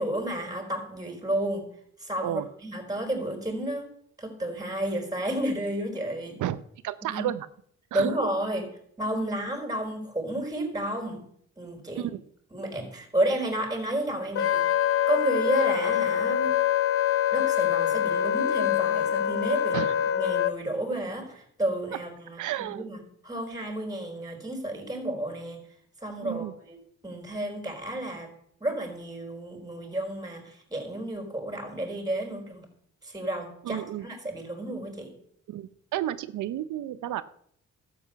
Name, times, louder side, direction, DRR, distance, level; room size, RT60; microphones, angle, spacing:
voice 1, 0.0-1.7 2.0-3.9 4.2-6.4 7.0-7.3 7.9-8.7 9.0-11.2 11.6-12.1 12.5-16.5 17.3-25.6 26.0-26.8 27.0-28.3 28.6-32.7 33.0-35.1, right 1 dB, 10° right, 3 dB, 4.4 m, -31 dB
voice 2, 6.8-7.5 7.9-8.1 12.0-12.2 19.7-19.9 22.4-22.9 26.2-26.5 33.6-34.1 35.5-37.2, right 13 dB, 80° right, 15 dB, 0.8 m, -31 dB
Wind instrument woodwind instrument, 14.4-20.5, left 10 dB, 50° left, 0.6 m, -25 dB
12.5 x 8.0 x 6.9 m, 0.66 s
cardioid pair, 90°, 30 cm